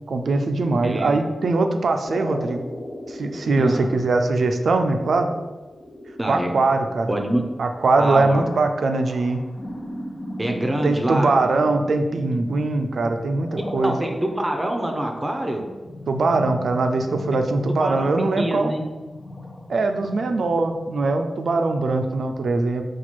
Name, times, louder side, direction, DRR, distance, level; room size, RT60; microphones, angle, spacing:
voice 1, 0.1-2.6 3.1-5.3 6.3-7.1 7.6-9.4 10.8-13.9 16.1-18.7 19.7-22.8, right 3 dB, 80° right, 6 dB, 0.3 m, -21 dB
voice 2, 0.8-1.2 3.6-3.9 6.2-6.5 7.1-7.5 8.0-8.4 10.4-11.3 13.8-15.6 17.8-18.8, right 1 dB, 25° right, 3 dB, 0.6 m, -25 dB
sound 1, 2.0-21.2, left 1 dB, 40° left, 0.6 m, -38 dB
4.2 x 2.3 x 4.3 m, 1.3 s
cardioid pair, 60°, 0 cm